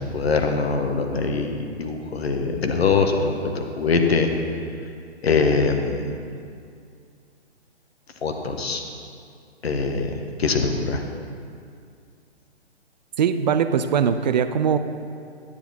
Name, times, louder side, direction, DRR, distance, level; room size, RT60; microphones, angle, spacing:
voice 1, 0.0-4.3 5.2-6.2 8.2-8.8 9.6-10.1 10.4-11.0, left 4 dB, 65° left, 4 dB, 1.4 m, -23 dB
voice 2, 13.2-14.8, right 7 dB, 40° right, 10 dB, 0.6 m, -21 dB
13.5 x 10.5 x 4.3 m, 2.3 s
figure-of-eight pair, 130°, 34 cm